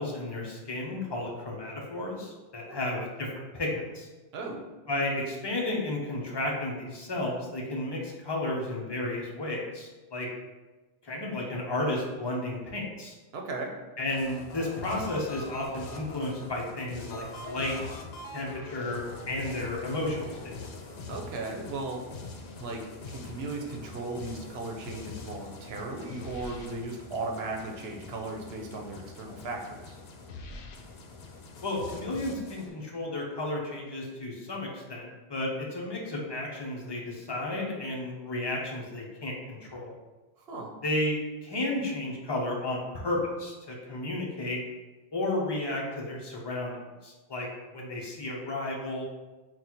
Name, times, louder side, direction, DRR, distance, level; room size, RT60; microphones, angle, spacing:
voice 1, 0.0-3.3 3.5-4.1 4.9-10.3 11.0-13.1 14.0-17.7 18.3-20.6 31.6-40.0 40.8-44.6 45.1-47.5 47.7-49.0, left 1 dB, 30° left, -2 dB, 0.7 m, -33 dB
voice 2, 13.3-13.7 21.1-22.0 22.6-30.0 40.4-40.7, right 2 dB, 80° right, 1 dB, 0.9 m, -36 dB
sound 1, 14.1-32.7, left 3 dB, 75° left, 0.8 m, -43 dB
4.0 x 2.4 x 4.4 m, 1.2 s
omnidirectional pair, 1.0 m